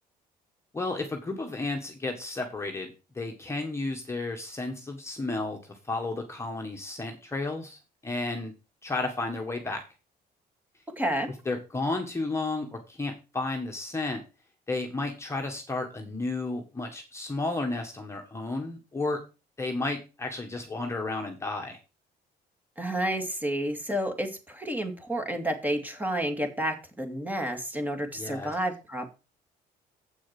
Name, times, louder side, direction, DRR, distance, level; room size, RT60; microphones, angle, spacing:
voice 1, 0.7-5.6 5.8-8.5 8.8-9.8 11.4-14.2 14.7-19.2 19.6-21.8 28.1-28.5, left 2 dB, 15° left, 2 dB, 1.6 m, -32 dB
voice 2, 11.0-11.3 22.8-29.1, right 1 dB, 10° right, 6 dB, 2.2 m, -30 dB
8.1 x 6.2 x 5.9 m, 0.30 s
cardioid pair, 110°, 17 cm